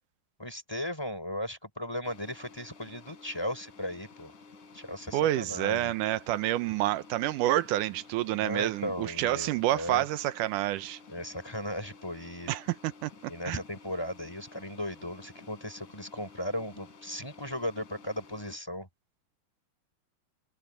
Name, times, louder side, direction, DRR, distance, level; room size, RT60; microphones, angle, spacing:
voice 1, 0.4-4.3 4.7-5.9 8.3-10.0 11.1-12.5 13.3-18.9, left 1 dB, 5° left, 4.1 m, -36 dB
sound 1, 2.0-18.6, left 4 dB, 75° left, 4.4 m, -53 dB
voice 2, 5.1-11.0 12.5-12.6 13.0-13.1 13.4-13.6, right 14 dB, 90° right, 2.3 m, -28 dB
open air
omnidirectional pair, 3.6 m